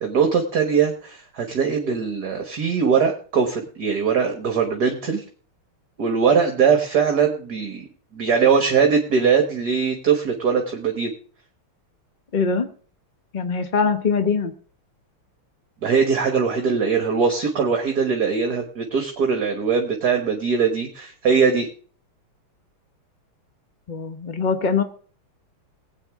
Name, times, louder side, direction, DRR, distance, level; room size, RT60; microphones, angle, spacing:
voice 1, 0.0-5.2 6.0-7.9 8.1-11.1 15.8-21.7, right 6 dB, 50° right, 5 dB, 1.7 m, -21 dB
voice 2, 12.3-12.7 13.3-14.5 23.9-24.8, left 5 dB, 70° left, 8 dB, 0.4 m, -22 dB
19.5 x 8.8 x 3.5 m, 0.43 s
omnidirectional pair, 2.4 m